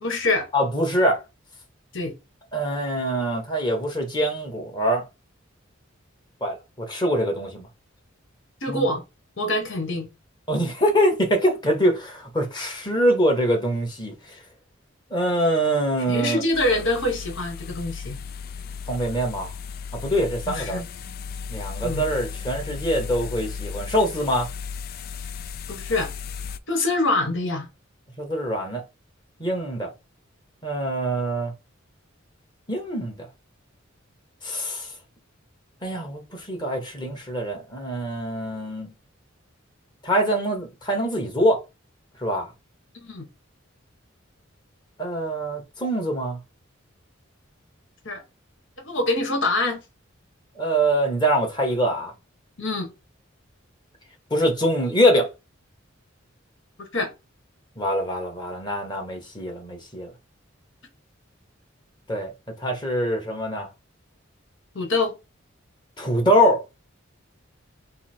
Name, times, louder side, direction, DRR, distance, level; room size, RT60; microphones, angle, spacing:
voice 1, 0.0-0.5 1.9-2.1 8.6-9.0 9.4-10.1 16.1-18.2 20.5-20.9 21.8-22.0 25.7-26.1 26.7-27.7 43.0-43.2 48.0-48.2 48.8-49.8 52.6-52.9 56.9-57.1 64.7-65.1, left 2 dB, 65° left, 1.5 m, -25 dB
voice 2, 0.5-1.2 2.5-5.0 6.4-7.7 8.7-8.9 10.5-14.1 15.1-16.4 18.9-19.5 19.9-20.8 21.5-24.5 28.2-28.8 29.4-29.9 30.6-31.5 32.7-33.2 34.4-34.9 35.8-38.9 40.0-41.6 42.2-42.5 45.0-46.4 50.6-52.1 54.3-55.3 57.8-60.1 62.1-62.3 62.6-63.7 66.0-66.6, equal, 20° left, 1.4 m, -24 dB
sound 1, 16.5-26.6, left 6 dB, 50° left, 0.4 m, -35 dB
5.5 x 2.1 x 4.4 m
head